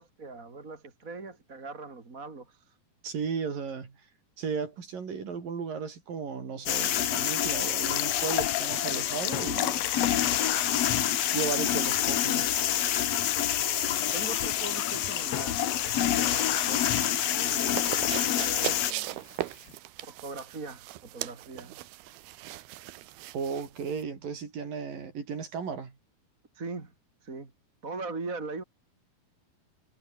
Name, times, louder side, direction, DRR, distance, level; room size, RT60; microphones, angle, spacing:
voice 1, 0.0-2.8 13.3-15.6 16.2-16.9 17.2-19.2 20.0-21.8 26.5-26.9 27.2-27.5 27.8-28.6, right 3 dB, 25° right, 2.7 m, -41 dB
voice 2, 3.0-4.0 4.4-9.8 11.3-12.5 23.3-25.9, right 6 dB, 65° right, 5.6 m, -35 dB
sound 1, 6.7-18.9, left 11 dB, 55° left, 2.0 m, -27 dB
sound 2, 7.8-19.7, left 17 dB, 90° left, 2.8 m, -37 dB
sound 3, 13.7-24.0, right 16 dB, 85° right, 2.9 m, -40 dB
omnidirectional pair, 4.3 m